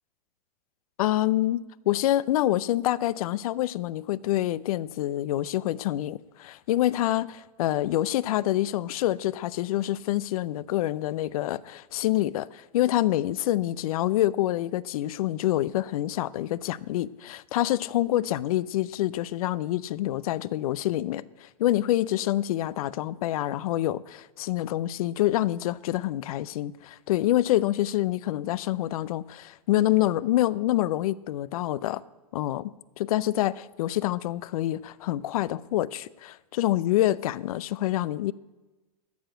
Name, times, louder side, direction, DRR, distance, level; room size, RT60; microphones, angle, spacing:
voice 1, 1.0-1.6 1.9-32.0 32.3-38.3, left 14 dB, 65° left, 0.5 m, -26 dB
13.5 x 4.8 x 9.0 m
hypercardioid pair, 105°, 20 cm